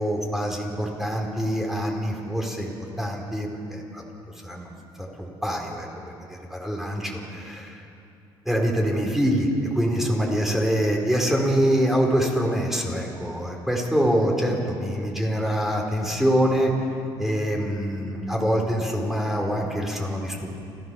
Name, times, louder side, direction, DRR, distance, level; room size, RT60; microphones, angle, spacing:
voice 1, 0.0-2.7 3.0-4.0 4.4-4.7 5.0-7.8 8.4-16.7 17.2-20.5, equal, 5° right, 0 dB, 4.7 m, -25 dB
28.5 x 15.0 x 7.1 m, 2.6 s
cardioid pair, 90°, 10 cm